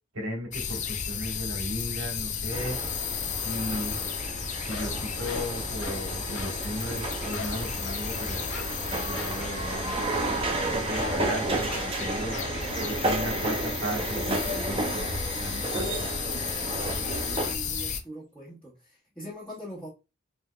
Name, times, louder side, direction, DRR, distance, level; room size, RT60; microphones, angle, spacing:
voice 1, 0.1-2.8 3.3-4.0 4.7-8.4 9.0-9.8 10.3-15.1 15.4-16.1, equal, 90° right, 1.6 m, -36 dB
sound 1, 0.5-18.0, left 6 dB, 35° left, 0.5 m, -34 dB
sound 2, 2.5-17.5, right 2 dB, 25° right, 0.6 m, -32 dB
sound 3, 4.1-4.2 4.6-6.1 6.3-6.6 6.9-7.0 7.3-8.1 8.5-8.8 9.1-9.4 11.0-11.3 11.7-12.0 12.3-12.6, left 3 dB, 75° left, 1.3 m, -40 dB
voice 2, 16.7-19.9, equal, 5° left, 1.2 m, -43 dB
4.4 x 3.4 x 2.3 m
head